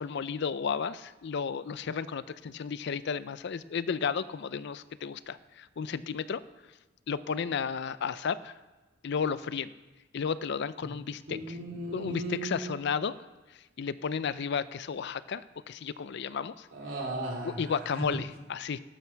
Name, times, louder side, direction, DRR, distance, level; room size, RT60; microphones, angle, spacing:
voice 1, 0.0-6.4 7.1-8.5 9.0-9.7 10.1-11.6 11.9-13.1 13.8-16.7 17.4-18.8, left 6 dB, 60° left, 16 dB, 0.4 m, -33 dB
voice 2, 11.3-12.7 16.7-18.0, right 2 dB, 75° right, -1 dB, 2.9 m, -36 dB
12.0 x 11.5 x 4.5 m, 1.2 s
head